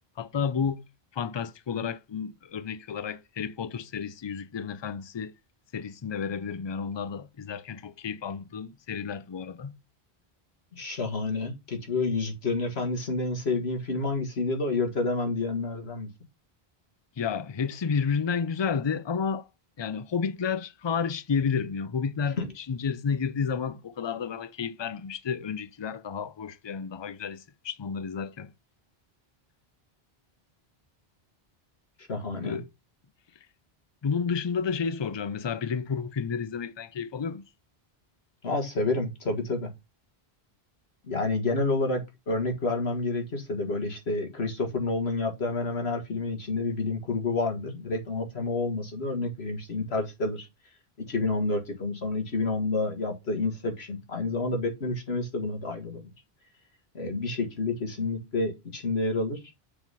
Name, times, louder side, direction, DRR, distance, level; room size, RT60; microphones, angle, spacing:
voice 1, 0.2-0.8 1.1-5.3 5.7-9.8 17.2-19.5 19.8-28.5 32.4-32.7 34.0-37.4, left 6 dB, 35° left, 0.5 m, -31 dB
voice 2, 10.7-16.1 22.4-22.5 32.1-32.6 38.4-39.7 41.1-42.0 42.3-50.5 51.0-56.0 56.9-59.4, left 3 dB, 90° left, 2.0 m, -29 dB
6.8 x 4.0 x 5.5 m
omnidirectional pair, 1.0 m